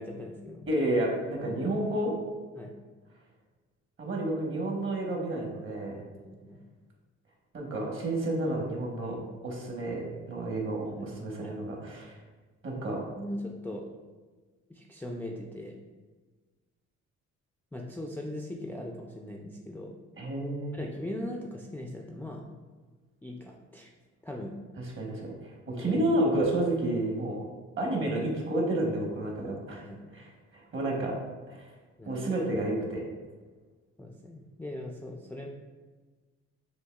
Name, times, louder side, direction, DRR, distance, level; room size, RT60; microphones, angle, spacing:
voice 1, 0.0-0.7 1.4-1.6 2.6-2.7 5.9-6.6 9.2-9.3 10.8-11.7 13.2-13.9 14.7-15.8 17.7-20.0 20.7-22.5 23.2-23.9 24.2-24.6 25.7-26.1 29.4-30.1 32.0-32.2 34.0-35.5, left 1 dB, 5° left, -1 dB, 0.3 m, -40 dB
voice 2, 0.7-2.1 4.0-6.0 7.5-9.2 9.4-12.2 12.6-13.0 20.2-20.7 24.8-27.4 27.8-29.8 30.1-31.2 31.5-31.7 32.1-33.1, right 1 dB, 45° right, -1 dB, 1.2 m, -30 dB
6.3 x 2.7 x 2.3 m, 1.3 s
cardioid pair, 90°, 30 cm